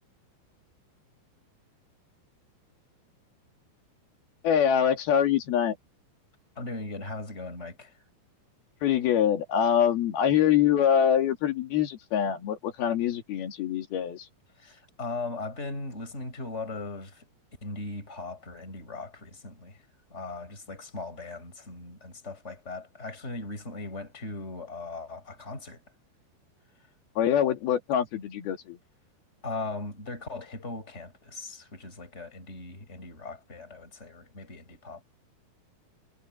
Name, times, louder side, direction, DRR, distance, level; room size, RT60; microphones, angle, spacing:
voice 1, 4.4-5.8 8.8-14.3 27.2-28.8, left 9 dB, 60° left, 4.0 m, -24 dB
voice 2, 6.5-8.0 14.6-17.3 17.6-19.8 20.1-25.8 29.4-35.0, left 3 dB, 15° left, 6.7 m, -38 dB
omnidirectional pair, 5.4 m